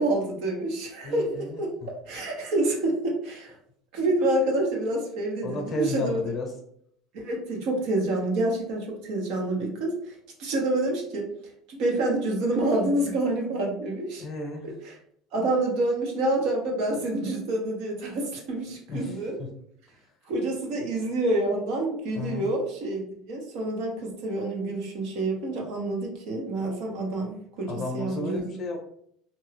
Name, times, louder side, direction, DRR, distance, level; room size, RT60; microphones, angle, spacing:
voice 1, 0.0-1.7 2.1-3.5 3.9-6.2 7.1-10.1 10.4-11.3 11.7-14.2 14.6-15.0 15.3-19.4 20.3-28.6, right 2 dB, 65° right, 0 dB, 0.8 m, -27 dB
voice 2, 1.0-1.6 5.4-6.5 14.2-14.6 18.9-19.5 22.2-22.5 27.7-28.8, left 2 dB, 30° left, 2 dB, 0.8 m, -33 dB
2.6 x 2.3 x 3.2 m, 0.67 s
cardioid pair, 145°, 0 cm